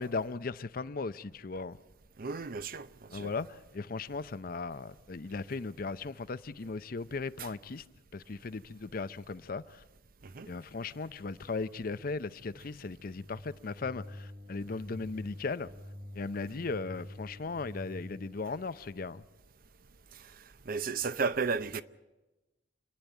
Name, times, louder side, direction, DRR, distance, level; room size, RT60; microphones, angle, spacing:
voice 1, 0.0-1.8 3.1-7.8 8.1-9.8 10.5-15.7 16.1-19.2, left 3 dB, 50° left, 0.6 m, -37 dB
voice 2, 2.2-3.3 7.4-7.5 10.2-10.5 20.7-21.8, right 5 dB, 50° right, 0.7 m, -33 dB
sound 1, 13.2-18.4, left 1 dB, 70° right, 7.4 m, -48 dB
27.5 x 10.5 x 9.2 m
head